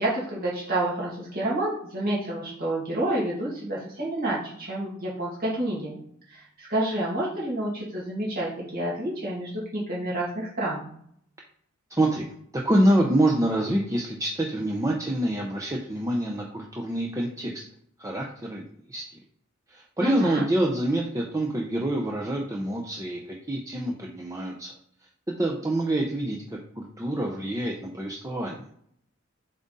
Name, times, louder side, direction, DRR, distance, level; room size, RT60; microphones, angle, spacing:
voice 1, 0.0-6.0 6.3-10.8 20.0-20.4, right 1 dB, 45° right, -6 dB, 2.4 m, -29 dB
voice 2, 11.9-12.3 12.5-17.6 18.0-18.6 18.9-19.2 19.7-24.7 25.4-28.7, right 1 dB, 15° right, -1 dB, 0.7 m, -26 dB
7.6 x 3.7 x 4.0 m, 0.66 s
head